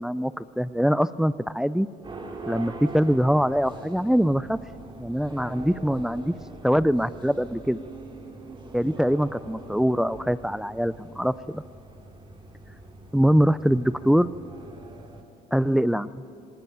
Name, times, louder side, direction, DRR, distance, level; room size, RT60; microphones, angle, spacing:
voice 1, 0.0-1.9 2.5-4.6 5.0-6.3 6.6-7.8 8.7-11.6 13.1-14.3 15.5-16.1, equal, 5° right, 17 dB, 0.5 m, -23 dB
sound 1, 2.0-15.2, right 2 dB, 30° right, 2.9 m, -42 dB
19.5 x 18.0 x 9.1 m, 2.6 s
cardioid pair, 110°, 17 cm